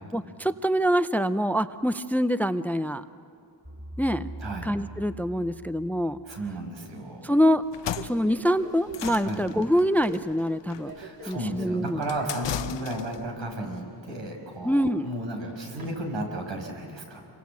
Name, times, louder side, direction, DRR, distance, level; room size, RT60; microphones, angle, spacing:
voice 1, 0.1-3.0 4.0-4.3 4.6-6.2 7.2-7.6 8.0-10.9 11.3-12.0 14.6-15.1, equal, 5° left, 12 dB, 0.6 m, -25 dB
sound 1, 3.6-6.8, right 2 dB, 15° right, 2.7 m, -42 dB
voice 2, 6.2-7.3 9.2-9.4 11.0-17.2, right 1 dB, 80° right, 1 dB, 5.9 m, -34 dB
Subway metro underground, 6.8-16.6, right 2 dB, 55° right, 3.4 m, -47 dB
sound 2, 7.6-13.3, left 11 dB, 75° left, 0.7 m, -37 dB
27.0 x 24.0 x 8.3 m, 2.7 s
wide cardioid pair, 100°, 44 cm